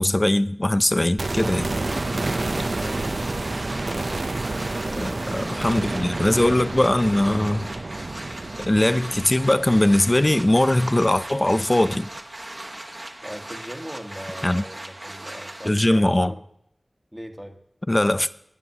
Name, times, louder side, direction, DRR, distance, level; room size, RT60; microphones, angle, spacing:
voice 1, 0.0-1.7 5.0-7.6 8.7-12.1 14.4-14.6 15.6-16.3 17.9-18.3, left 1 dB, 30° left, 0.5 m, -20 dB
sound 1, 1.2-11.2 11.5-11.6, right 2 dB, 65° right, 0.7 m, -30 dB
voice 2, 1.7-3.3 4.8-5.8 7.3-7.6 13.2-16.5 17.1-17.6, equal, ahead, 1.5 m, -40 dB
sound 2, 1.9-15.7, right 1 dB, 40° right, 1.3 m, -38 dB
17.5 x 9.3 x 2.9 m
wide cardioid pair, 55°, 0 cm